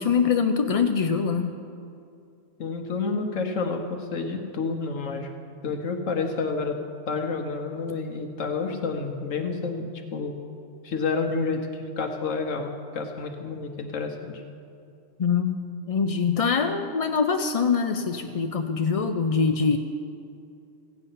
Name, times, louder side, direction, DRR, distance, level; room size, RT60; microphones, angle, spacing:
voice 1, 0.0-1.5 15.2-15.6 15.9-19.8, left 5 dB, 60° left, 6 dB, 0.3 m, -23 dB
voice 2, 2.6-5.3 5.6-6.8 7.1-10.3 10.8-14.4, left 4 dB, 80° left, 3 dB, 1.3 m, -29 dB
16.0 x 8.7 x 5.6 m, 2.6 s
omnidirectional pair, 1.3 m